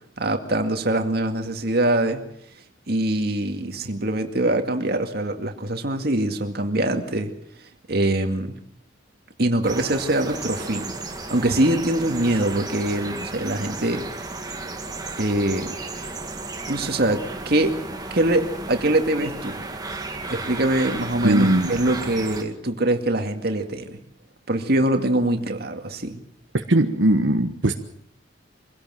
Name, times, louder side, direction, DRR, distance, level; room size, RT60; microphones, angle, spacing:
voice 1, 0.2-2.2 2.9-7.3 7.9-8.5 9.4-10.9 11.3-14.1 15.2-15.7 16.7-17.8 18.1-19.6 20.3-24.0 24.5-26.2, right 1 dB, 55° right, 5 dB, 2.2 m, -23 dB
sound 1, 9.6-22.4, right 3 dB, 20° right, 2.2 m, -34 dB
voice 2, 21.2-21.7 26.5-27.7, right 1 dB, 90° right, 5 dB, 1.3 m, -19 dB
24.5 x 17.0 x 7.7 m, 0.70 s
head